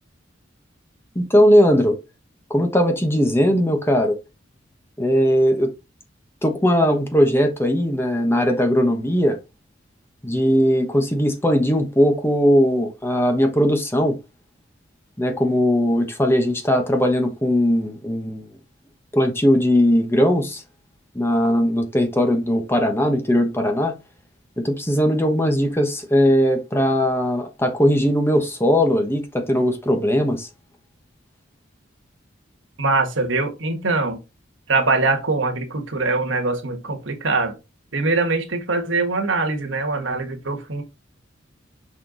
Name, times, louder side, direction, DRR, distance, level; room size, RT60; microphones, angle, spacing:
voice 1, 1.1-2.0 2.5-4.2 5.0-5.7 6.4-9.4 10.2-14.2 15.2-18.5 19.1-20.6 21.1-23.9 24.6-30.5, equal, 15° left, 1.2 m, -19 dB
voice 2, 32.8-34.2 34.7-37.6 37.9-40.8, right 3 dB, 80° right, 1.5 m, -22 dB
5.9 x 4.5 x 3.9 m
head